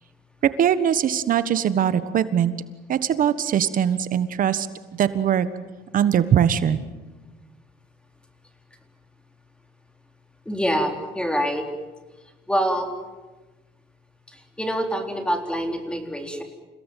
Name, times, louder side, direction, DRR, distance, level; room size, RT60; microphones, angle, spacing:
voice 1, 0.6-2.5 2.9-4.7 5.0-5.5 5.9-6.8, right 9 dB, 55° right, 13 dB, 1.4 m, -21 dB
voice 2, 10.5-11.7 12.5-12.9 14.3-16.4, equal, 5° left, 5 dB, 4.0 m, -25 dB
29.0 x 18.0 x 9.3 m, 1.2 s
cardioid pair, 110°, 17 cm